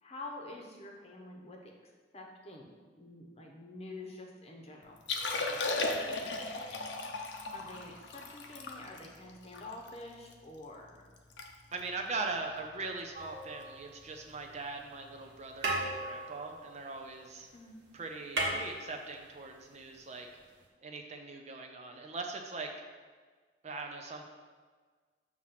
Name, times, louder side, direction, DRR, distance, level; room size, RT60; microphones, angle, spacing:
voice 1, 0.0-1.7 2.1-5.8 6.2-6.7 7.5-11.1 17.5-17.8, left 2 dB, 35° left, 0 dB, 0.9 m, -48 dB
Liquid, 5.0-10.3 10.8-10.9 11.2-11.5 11.7-12.0 12.6-12.8 14.3-14.4, left 3 dB, 75° left, 0.7 m, -36 dB
voice 2, 11.7-17.5 17.9-20.3 20.8-22.7 23.6-24.3, right 3 dB, 35° right, 3 dB, 0.5 m, -41 dB
sound 1, 13.1-14.3 15.2-15.3 15.6-17.5 17.7-17.8 18.1-19.5 20.6-20.7, right 2 dB, 65° right, 1.4 m, -36 dB
7.1 x 3.1 x 5.7 m, 1.5 s
head